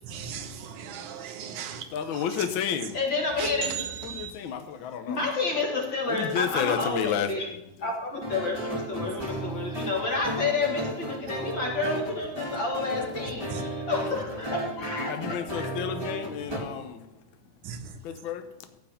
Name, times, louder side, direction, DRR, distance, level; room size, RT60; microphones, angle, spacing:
voice 1, 0.0-2.5 3.4-4.3 13.5-13.6 17.6-18.0, right 8 dB, 80° right, 2.5 m, -37 dB
voice 2, 1.9-3.0 4.0-5.2 6.0-7.9 13.1-13.2 14.1-14.2 15.1-17.1 18.0-18.5, left 8 dB, 70° left, 1.2 m, -31 dB
voice 3, 2.9-3.8 5.1-7.5 7.8-15.7, left 3 dB, 40° left, 2.5 m, -30 dB
sound 1, 8.2-16.6, right 1 dB, 10° right, 1.7 m, -34 dB
14.5 x 4.8 x 8.7 m
omnidirectional pair, 3.5 m